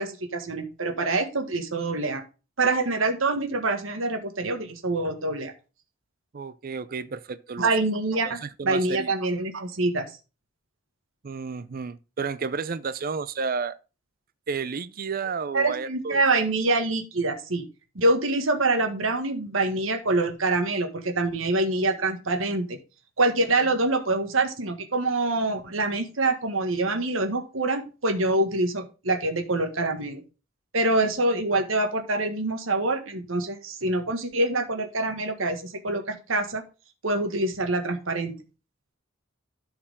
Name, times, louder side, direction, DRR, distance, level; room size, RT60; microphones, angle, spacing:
voice 1, 0.0-2.2 2.6-5.5 7.6-10.2 15.5-17.7 17.9-22.8 23.2-30.2 30.7-36.6 37.0-38.3, right 2 dB, 80° right, 1.6 m, -25 dB
voice 2, 6.3-7.7 8.2-9.1 11.2-13.8 14.5-16.4, right 5 dB, 45° right, 0.5 m, -32 dB
12.5 x 4.8 x 3.6 m
head